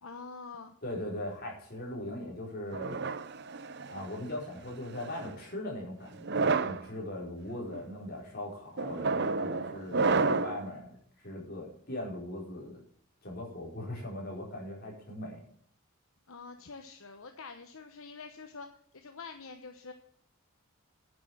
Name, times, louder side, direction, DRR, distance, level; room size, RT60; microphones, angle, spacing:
voice 1, 0.0-0.7 16.3-18.7 18.9-19.9, left 4 dB, 70° left, 6 dB, 1.0 m, -46 dB
voice 2, 0.8-3.0 3.9-12.8 13.2-15.4, left 1 dB, 45° left, -1 dB, 4.5 m, -40 dB
sound 1, 2.7-4.2 4.9-5.3 6.1-6.8 7.5-7.8 8.8-10.6, right 4 dB, 50° right, 0.7 m, -30 dB
10.0 x 7.8 x 7.1 m, 0.65 s
head